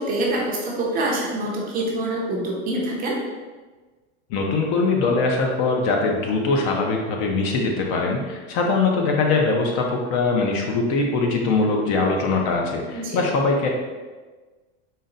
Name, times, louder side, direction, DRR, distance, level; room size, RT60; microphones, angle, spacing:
voice 1, 0.0-3.2 12.9-13.3, right 1 dB, 25° right, -3 dB, 0.6 m, -25 dB
voice 2, 4.3-13.7, left 3 dB, 40° left, 1 dB, 0.5 m, -22 dB
4.0 x 2.0 x 3.8 m, 1.3 s
supercardioid pair, 150°, 34 cm